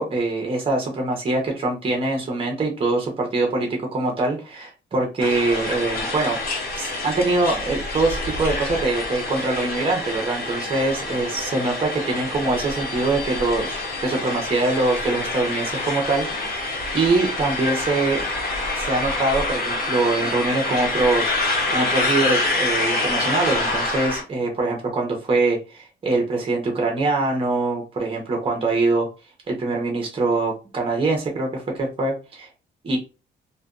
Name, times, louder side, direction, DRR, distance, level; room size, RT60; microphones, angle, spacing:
voice 1, 0.0-18.2 18.8-21.3 21.7-29.1 29.5-32.5 32.8-33.0, right 2 dB, 30° right, 1 dB, 0.8 m, -23 dB
sound 1, 5.2-24.2, left 2 dB, 45° left, 1.1 m, -26 dB
2.5 x 2.2 x 2.4 m, 0.30 s
cardioid pair, 90°, 20 cm